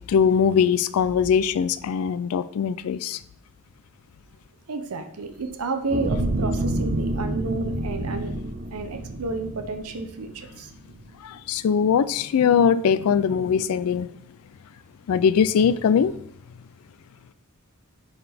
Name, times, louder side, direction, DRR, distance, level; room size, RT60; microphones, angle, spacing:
voice 1, 0.1-3.2 11.2-14.1 15.1-16.2, left 7 dB, 80° left, 0.3 m, -21 dB
voice 2, 4.7-8.3 8.7-10.7, right 3 dB, 85° right, 0.7 m, -31 dB
sound 1, 5.9-10.4 10.9-11.0, right 1 dB, 40° right, 0.5 m, -28 dB
11.0 x 4.0 x 3.4 m
head